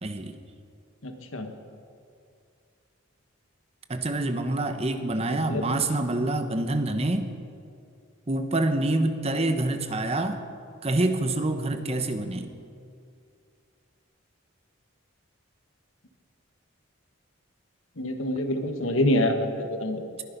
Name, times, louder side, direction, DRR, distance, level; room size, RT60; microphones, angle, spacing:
voice 1, 0.0-0.4 3.9-7.3 8.3-10.4 10.8-12.6, right 2 dB, 30° right, 8 dB, 0.9 m, -26 dB
voice 2, 1.0-1.5 5.3-5.7 18.0-20.0, left 1 dB, 80° left, 6 dB, 1.5 m, -26 dB
21.0 x 11.5 x 5.4 m, 2.4 s
head